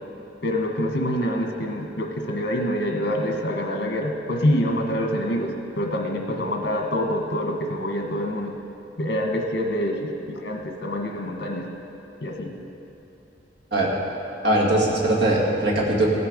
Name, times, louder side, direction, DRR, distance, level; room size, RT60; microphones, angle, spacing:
voice 1, 0.4-8.5 9.0-11.7 12.2-12.5, equal, 65° left, 2 dB, 1.4 m, -26 dB
voice 2, 14.4-16.1, right 1 dB, 65° right, -4 dB, 2.2 m, -20 dB
17.5 x 6.8 x 5.2 m, 3.0 s
head